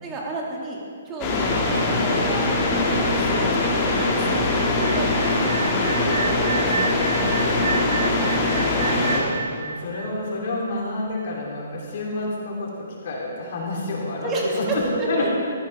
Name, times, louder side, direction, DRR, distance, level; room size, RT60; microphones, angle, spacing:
voice 1, 0.0-0.8 1.1-2.4 2.7-4.5 4.8-7.9 14.2-15.1, right 3 dB, 20° right, -2 dB, 2.3 m, -32 dB
sound 1, 1.2-9.2, left 2 dB, 25° left, 2.1 m, -22 dB
sound 2, 5.2-10.8, right 5 dB, 70° right, 1.7 m, -31 dB
voice 2, 8.4-15.3, left 2 dB, 55° left, -4 dB, 3.5 m, -29 dB
14.5 x 11.0 x 3.6 m, 2.2 s
hypercardioid pair, 145°, 0 cm